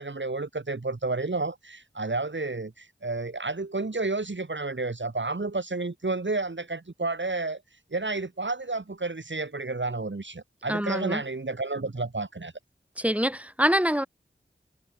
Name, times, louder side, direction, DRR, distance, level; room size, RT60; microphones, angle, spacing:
voice 1, 0.0-7.6 7.9-12.5, right 3 dB, 60° right, 5.6 m, -31 dB
voice 2, 10.7-11.2 13.0-14.1, equal, 5° right, 6.8 m, -25 dB
wide cardioid pair, 55°, 21 cm